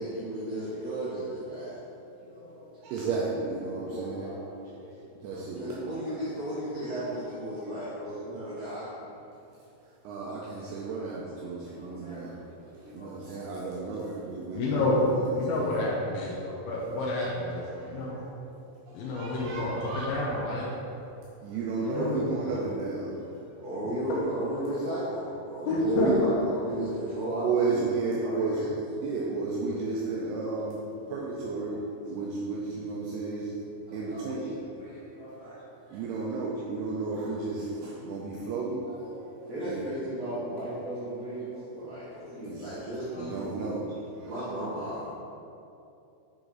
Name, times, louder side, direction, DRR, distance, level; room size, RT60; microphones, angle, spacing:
voice 1, 0.0-1.8 5.5-7.9 8.2-8.9 23.6-28.7 39.4-43.7 44.2-45.1, right 1 dB, 50° right, -13 dB, 2.1 m, -34 dB
voice 2, 2.2-2.9 3.8-6.8 7.1-8.5 11.0-11.1 11.4-12.4 12.8-13.7 14.0-14.2 14.5-14.6 16.3-16.8 18.1-18.3 19.2-19.4 19.7-19.8 21.5-21.6 23.1-23.7 25.1-25.2 25.5-25.6 30.0-30.1 31.4-31.7 33.9-35.6 38.6-39.1 41.0-42.4 43.1-43.2 44.2-44.3, equal, 55° left, -13 dB, 1.4 m, -46 dB
voice 3, 2.8-4.3 5.2-5.6 10.0-12.3 12.7-15.9 17.7-18.0 18.9-20.1 21.4-23.1 25.8-26.1 27.4-28.7 29.0-30.8 31.1-33.5 33.9-34.5 35.9-39.0 39.6-39.9 42.4-42.6 43.2-44.3, right 3 dB, 85° right, -4 dB, 2.4 m, -33 dB
voice 4, 14.5-18.2 18.9-20.7 21.8-22.2 22.5-22.6 25.7-26.1 26.4-26.5, left 2 dB, 75° left, -5 dB, 2.2 m, -29 dB
10.0 x 5.2 x 3.9 m, 2.8 s
omnidirectional pair, 5.3 m